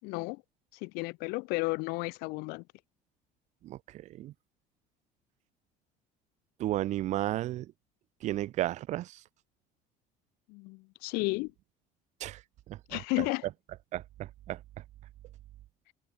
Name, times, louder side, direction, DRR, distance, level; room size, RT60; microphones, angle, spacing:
voice 1, 0.0-0.4 0.8-2.6 10.5-11.5 12.9-13.4, left 27 dB, 80° left, 7.1 m, -33 dB
voice 2, 3.6-4.3 6.6-7.7 8.2-9.2 12.2-12.4 12.7-13.0 13.9-14.6, right 14 dB, 50° right, 2.9 m, -33 dB
cardioid pair, 170°, 16 cm